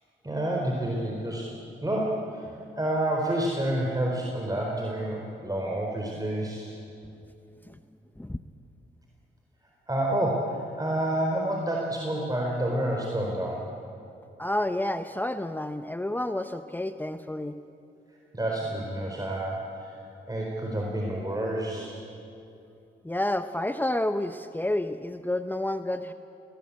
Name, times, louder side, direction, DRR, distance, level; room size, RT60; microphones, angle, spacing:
voice 1, 0.2-1.5 1.8-2.5 2.8-6.7 9.9-13.7 18.3-19.9 20.3-21.9, right 1 dB, 20° right, -1 dB, 4.3 m, -29 dB
voice 2, 14.4-17.6 23.0-26.1, left 1 dB, 10° left, 9 dB, 0.9 m, -29 dB
22.0 x 19.0 x 8.6 m, 2.7 s
supercardioid pair, 55°, 21 cm